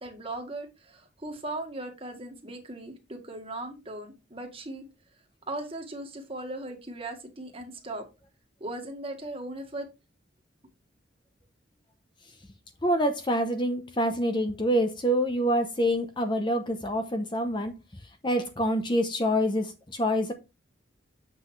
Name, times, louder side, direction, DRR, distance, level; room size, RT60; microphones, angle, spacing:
voice 1, 0.0-4.8 5.5-8.0 8.6-9.9, right 2 dB, 30° right, 1.6 m, -38 dB
voice 2, 12.8-17.7 18.2-20.3, equal, 25° left, 0.8 m, -26 dB
7.8 x 6.1 x 3.2 m
head